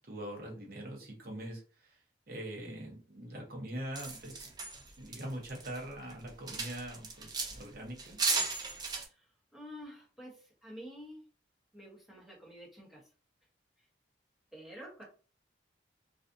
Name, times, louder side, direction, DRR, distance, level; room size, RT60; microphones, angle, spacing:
voice 1, 0.1-2.0 2.3-4.5 5.0-8.2, right 1 dB, 50° right, 0 dB, 0.8 m, -43 dB
sound 1, 4.0-5.8 6.1-7.7 8.0-9.0, right 4 dB, 20° right, 0.3 m, -35 dB
voice 2, 9.1-11.2 11.7-13.0 14.5-15.0, equal, ahead, -4 dB, 0.8 m, -49 dB
2.5 x 2.3 x 2.5 m, 0.37 s
head